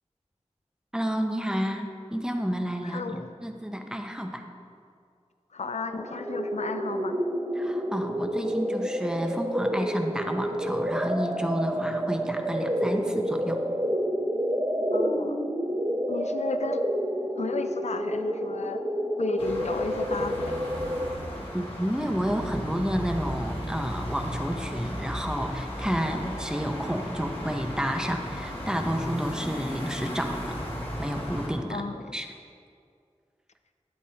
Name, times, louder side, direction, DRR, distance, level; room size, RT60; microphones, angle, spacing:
voice 1, 0.9-4.5 7.6-13.6 21.5-30.5 31.0-31.8 32.1-32.3, equal, 5° right, 4 dB, 0.9 m, -30 dB
voice 2, 2.8-3.3 5.5-7.2 14.9-15.4 16.1-16.8 17.4-18.8 19.2-20.6 31.7-32.2, left 4 dB, 70° left, 9 dB, 0.4 m, -33 dB
sound 1, 5.9-21.1, equal, 35° right, 0.9 m, -29 dB
sound 2, 19.4-31.5, equal, 50° left, 2.0 m, -35 dB
12.0 x 9.2 x 2.9 m, 2.3 s
wide cardioid pair, 45°, 12 cm